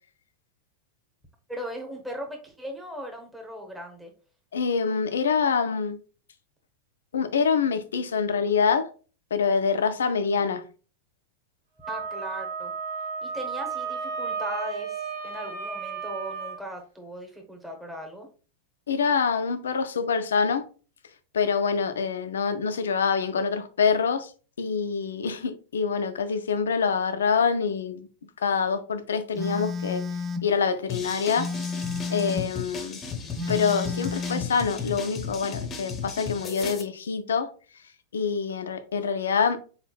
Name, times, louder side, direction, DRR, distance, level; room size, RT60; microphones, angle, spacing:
voice 1, 1.5-4.1 11.9-12.7 13.2-18.3, equal, 5° right, 0.9 m, -38 dB
voice 2, 4.5-6.0 7.1-8.9 9.3-10.6 18.9-20.7 21.3-24.3 24.6-28.1 28.4-30.1 30.4-31.5 32.1-33.0 33.5-37.5 38.1-39.6, left 6 dB, 65° left, 0.4 m, -25 dB
Wind instrument woodwind instrument, 11.8-16.6, right 5 dB, 70° right, 1.8 m, -33 dB
Telephone, 29.4-30.5 31.4-32.5 33.4-34.5, left 4 dB, 25° right, 0.4 m, -31 dB
sound 1, 30.9-36.8, left 5 dB, 25° left, 0.7 m, -35 dB
4.0 x 3.6 x 2.3 m
figure-of-eight pair, 90°, 0 cm